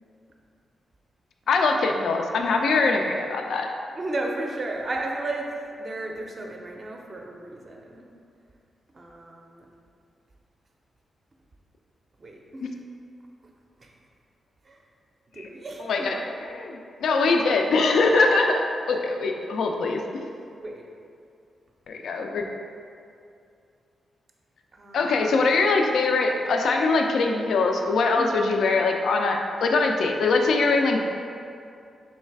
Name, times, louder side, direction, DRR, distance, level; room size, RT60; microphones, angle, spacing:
voice 1, 1.5-3.7 15.4-15.5 15.8-20.3 21.9-22.5 24.9-31.0, left 3 dB, 75° left, 3 dB, 0.3 m, -23 dB
voice 2, 4.0-5.5 5.8-8.0 8.9-9.6 12.2-12.4 13.8-13.9 14.7-14.8 15.3-16.2 17.1-17.5 20.5-20.8 24.7-25.3 28.2-28.4, right 2 dB, 30° right, 1 dB, 0.4 m, -34 dB
3.2 x 3.1 x 4.6 m, 2.5 s
wide cardioid pair, 145°, 0 cm